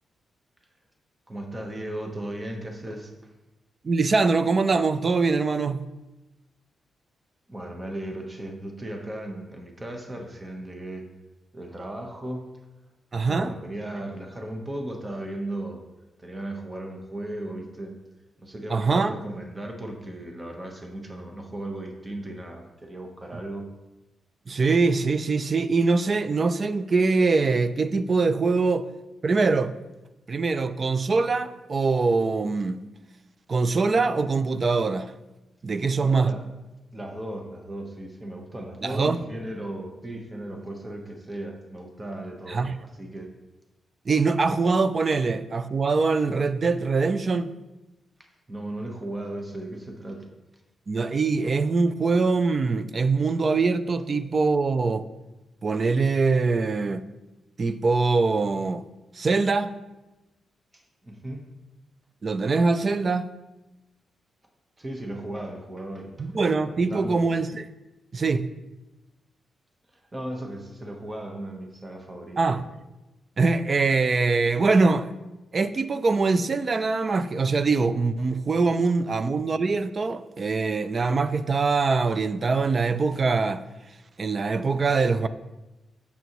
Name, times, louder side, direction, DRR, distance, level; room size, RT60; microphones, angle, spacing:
voice 1, 1.3-3.3 7.5-11.1 11.5-12.6 13.3-15.8 16.2-18.0 18.4-23.7 28.5-28.6 36.0-36.5 36.9-43.3 48.2-50.3 60.7-61.5 64.8-66.3 66.7-67.2 69.9-72.6, right 1 dB, 20° right, 1.1 m, -36 dB
voice 2, 3.8-5.9 13.1-13.5 18.7-19.2 24.5-28.9 29.2-29.7 30.3-32.8 33.5-35.1 35.6-36.3 38.8-39.2 42.5-42.8 44.1-47.5 50.9-55.0 55.6-57.0 57.6-58.8 59.1-59.7 62.2-63.3 66.2-67.7 68.1-68.5 72.4-72.6 73.4-75.1 75.5-83.6 84.2-85.3, right 4 dB, 40° right, 0.5 m, -23 dB
9.2 x 6.9 x 3.0 m
cardioid pair, 95°, 0 cm